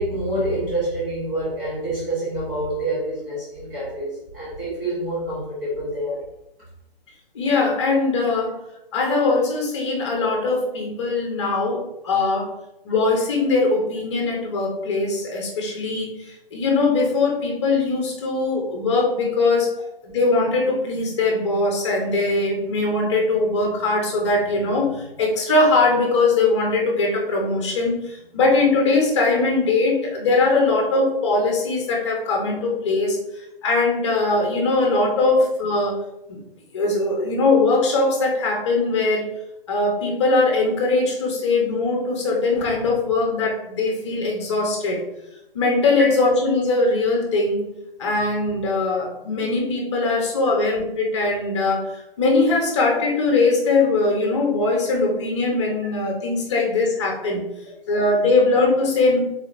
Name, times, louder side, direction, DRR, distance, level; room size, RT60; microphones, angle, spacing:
voice 1, 0.0-6.2 46.0-46.1 50.5-50.6, right 1 dB, 20° right, -10 dB, 1.4 m, -27 dB
voice 2, 7.3-8.6 8.9-12.5 12.8-19.7 20.0-33.2 33.6-36.4 36.7-39.3 39.7-45.0 45.5-47.6 48.0-57.4 57.9-59.2, left 3 dB, 30° left, 0 dB, 1.1 m, -21 dB
4.8 x 4.2 x 2.6 m, 0.86 s
hypercardioid pair, 155°, 30 cm